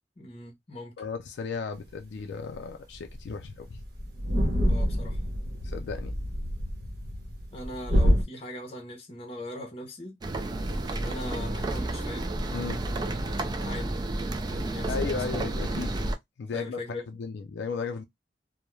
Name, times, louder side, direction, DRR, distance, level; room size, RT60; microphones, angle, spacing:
voice 1, 0.2-0.9 4.7-5.2 7.5-10.2 10.9-12.3 13.6-14.0 14.5-15.1 16.5-17.0, left 1 dB, 35° left, 0.7 m, -40 dB
voice 2, 1.0-3.8 5.6-6.1 12.5-12.8 14.9-15.9 16.4-18.0, left 5 dB, 90° left, 0.4 m, -35 dB
sound 1, 2.6-2.7 2.9-3.1 3.4-3.5 3.7-8.2, equal, 60° right, 0.9 m, -27 dB
sound 2, 10.2-16.1, right 2 dB, 25° right, 0.3 m, -31 dB
2.2 x 2.1 x 3.0 m
head